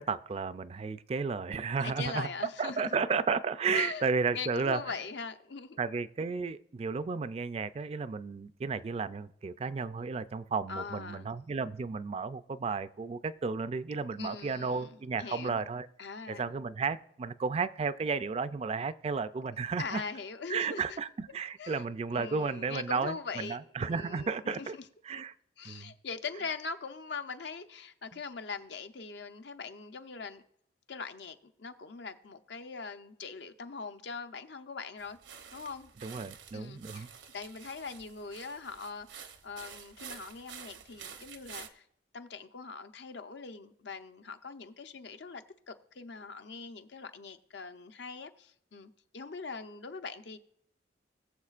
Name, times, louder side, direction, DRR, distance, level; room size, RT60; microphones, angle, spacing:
voice 1, 0.0-2.3 2.6-4.8 5.8-15.9 16.3-20.0 20.5-24.8 25.1-25.3 25.7-25.9 36.0-37.1, right 5 dB, 35° right, 0.3 m, -33 dB
voice 2, 1.8-3.0 3.7-5.8 10.7-11.3 14.2-15.6 16.0-16.5 19.8-21.0 21.6-21.8 22.1-24.8 25.6-30.4 30.9-35.2 35.5-35.9 36.5-37.1 37.3-41.8 42.1-50.4, left 4 dB, 75° left, 0.7 m, -42 dB
sound 1, 35.0-41.7, right 8 dB, 85° right, 0.8 m, -49 dB
20.5 x 7.1 x 2.5 m
head